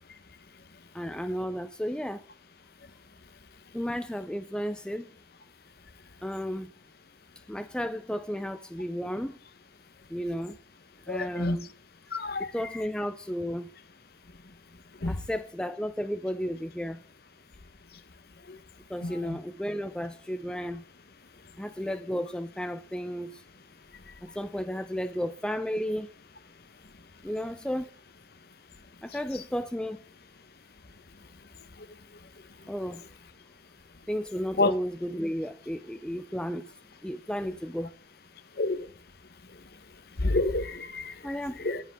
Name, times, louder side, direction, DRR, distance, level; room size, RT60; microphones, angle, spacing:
voice 1, 0.9-2.2 3.7-5.1 6.2-6.7 7.5-9.4 10.1-10.6 11.1-11.7 12.4-13.7 15.1-17.0 18.9-20.8 21.6-23.4 24.2-26.1 27.2-27.9 29.0-30.0 32.7-33.1 34.1-36.7 37.0-37.9 41.2-41.6, equal, 5° left, 0.4 m, -33 dB
voice 2, 11.1-11.6 12.1-12.5 15.0-15.2 18.5-18.6 19.0-19.4 34.6-34.7 38.6-38.9 40.2-41.3 41.6-41.8, left 2 dB, 55° left, 1.0 m, -28 dB
19.0 x 7.8 x 3.6 m
head